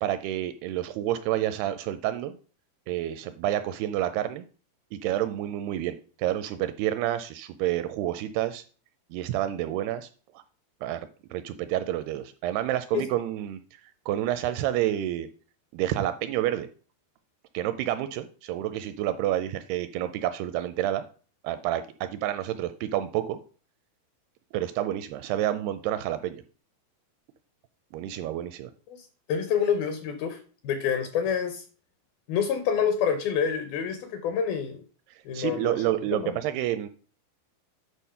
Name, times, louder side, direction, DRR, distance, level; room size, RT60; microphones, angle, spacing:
voice 1, 0.0-2.4 2.9-4.5 4.9-8.6 9.1-10.1 10.3-10.4 10.8-13.8 14.1-15.3 15.7-16.7 17.5-21.1 21.4-23.4 24.5-26.4 27.9-28.7 35.1-36.9, right 12 dB, 85° right, 11 dB, 2.3 m, -29 dB
voice 2, 28.9-30.4 30.6-31.6 32.3-34.8 35.3-35.8 36.1-36.3, left 7 dB, 75° left, 8 dB, 2.4 m, -27 dB
10.0 x 4.3 x 5.6 m, 0.40 s
omnidirectional pair, 5.0 m